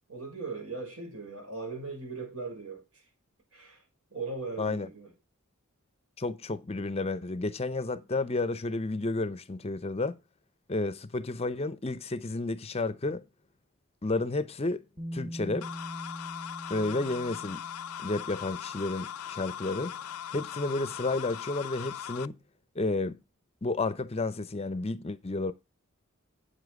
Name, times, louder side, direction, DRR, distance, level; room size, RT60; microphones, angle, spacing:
voice 1, 0.1-3.0 3.5-3.8 4.1-5.1, right 4 dB, 80° right, 5.8 m, -39 dB
voice 2, 6.2-10.2 10.7-13.2 14.0-14.8 15.1-15.7 16.7-17.6 18.0-19.9 20.3-22.4 22.8-23.2 23.6-25.5, left 2 dB, 30° left, 0.6 m, -31 dB
Bass guitar, 15.0-18.9 20.0-20.1, equal, 20° right, 1.1 m, -42 dB
sound 1, 15.6-22.3, left 9 dB, 85° left, 0.4 m, -40 dB
8.7 x 7.2 x 4.8 m
head